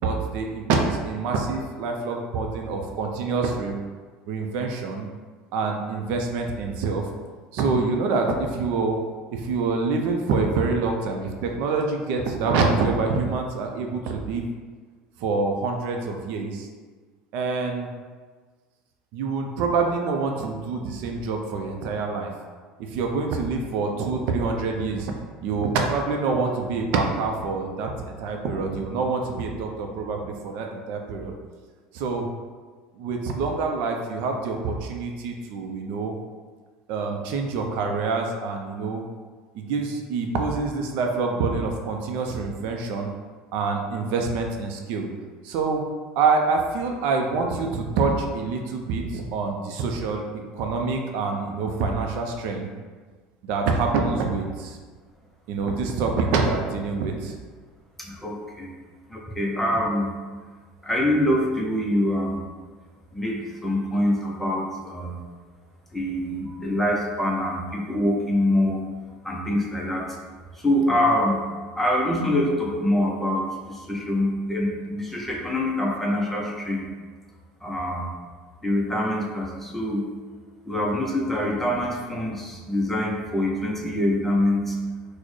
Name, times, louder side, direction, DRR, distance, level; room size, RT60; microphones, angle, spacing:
voice 1, 0.0-3.8 4.3-5.1 5.5-7.1 7.5-9.0 9.3-14.4 15.2-16.7 17.3-17.9 19.1-22.3 22.9-25.1 25.4-31.3 31.9-32.3 33.0-36.1 36.9-39.0 39.5-43.1 43.5-45.1 45.4-45.8 46.2-50.2 50.5-52.7 53.4-54.8 55.5-57.3, right 4 dB, 65° right, 2 dB, 0.4 m, -26 dB
voice 2, 58.0-58.7 59.1-60.2 60.8-62.4 63.1-65.2 65.9-68.8 69.2-70.1 70.5-71.5 71.8-76.8 77.6-78.1 78.6-80.1 80.7-84.8, left 1 dB, 5° left, -2 dB, 0.5 m, -25 dB
4.1 x 2.1 x 3.1 m, 1.4 s
supercardioid pair, 130°, 3 cm